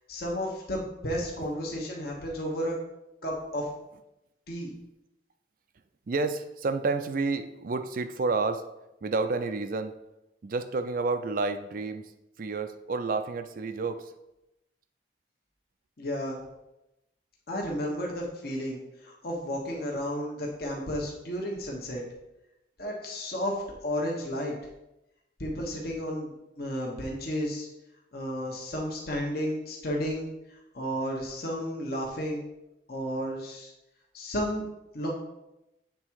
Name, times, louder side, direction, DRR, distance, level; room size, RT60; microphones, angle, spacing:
voice 1, 0.1-2.7 3.2-3.7 4.5-4.7 16.0-16.4 17.5-22.0 22.8-23.5 23.8-24.6 25.4-27.7 28.1-30.3 30.7-32.4 32.9-33.7 34.1-34.6 34.9-35.1, equal, 55° left, -2 dB, 1.1 m, -32 dB
voice 2, 6.1-8.6 9.0-9.9 10.4-12.1 12.4-14.1, right 3 dB, 50° right, 9 dB, 0.4 m, -30 dB
7.6 x 3.6 x 4.6 m, 0.91 s
head